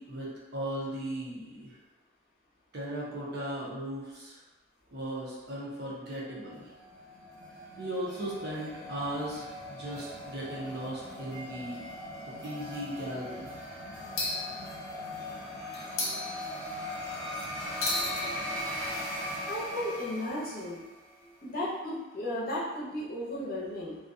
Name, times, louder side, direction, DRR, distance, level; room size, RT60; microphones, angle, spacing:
voice 1, 0.0-1.8 2.7-4.4 4.9-6.7 7.8-11.8 12.4-13.5, right 1 dB, 50° right, -6 dB, 0.7 m, -37 dB
sound 1, 6.4-21.1, left 1 dB, ahead, 0.7 m, -40 dB
sound 2, 6.7-7.8 8.5-8.6 8.8-8.9 10.4-10.5 11.0-11.4 11.7-11.9 12.6-13.1 14.2-15.3 15.7-17.0 17.8-21.6, left 2 dB, 85° left, 0.6 m, -38 dB
voice 2, 19.5-20.8 21.4-24.0, left 1 dB, 45° left, -7 dB, 0.7 m, -34 dB
2.4 x 2.2 x 2.6 m, 1.1 s
head